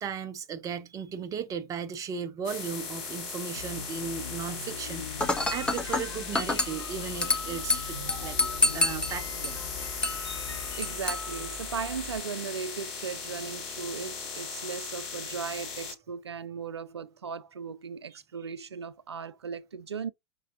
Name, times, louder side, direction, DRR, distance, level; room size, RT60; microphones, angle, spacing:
voice 1, 0.0-8.4 8.7-9.6 18.1-18.2, right 7 dB, 25° right, 0.7 m, -36 dB
sound 1, 2.4-15.9, left 5 dB, 35° left, 2.7 m, -38 dB
sound 2, 3.6-10.9, left 5 dB, 85° left, 0.5 m, -42 dB
Dishes pots and pans / Glass, 5.2-12.2, left 2 dB, 5° left, 0.7 m, -31 dB
voice 2, 8.0-8.4 10.8-20.1, right 6 dB, 75° right, 0.5 m, -37 dB
5.3 x 3.3 x 2.6 m
figure-of-eight pair, 90°, 14 cm